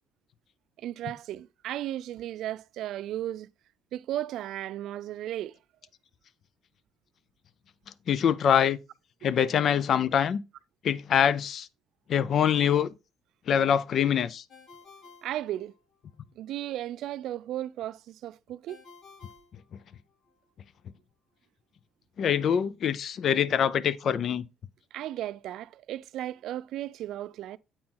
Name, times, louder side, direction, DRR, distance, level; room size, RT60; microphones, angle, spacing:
voice 1, 0.8-3.5 3.9-5.6 15.2-15.7 16.4-18.8 24.9-27.6, right 13 dB, 65° right, 0.3 m, -35 dB
voice 2, 8.1-8.8 9.2-10.4 10.8-11.7 12.1-12.9 13.5-14.4 22.2-24.5, left 8 dB, 45° left, 0.4 m, -24 dB
Ringtone, 14.5-16.2 18.7-20.3, left 5 dB, 75° left, 2.8 m, -54 dB
8.6 x 4.4 x 3.7 m
cardioid pair, 160°, 0 cm